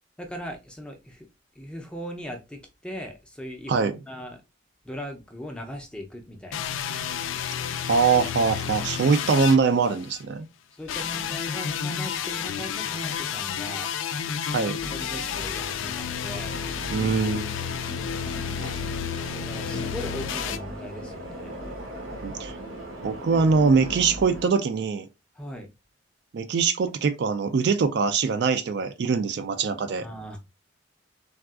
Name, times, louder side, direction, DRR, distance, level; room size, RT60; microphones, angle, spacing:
voice 1, 0.2-1.3 1.6-4.4 4.8-6.6 10.7-13.9 14.9-16.6 19.3-21.6 25.4-25.7 30.0-30.4, equal, 5° left, 0.5 m, -39 dB
sound 1, 6.5-10.2 10.9-20.6, left 8 dB, 80° left, 0.3 m, -31 dB
voice 2, 7.9-10.5 14.5-14.8 16.9-17.5 22.2-22.6 23.0-25.1 26.3-30.0, right 5 dB, 55° right, 0.3 m, -23 dB
sound 2, 14.8-24.5, right 1 dB, 85° right, 1.0 m, -38 dB
3.5 x 2.3 x 2.3 m
head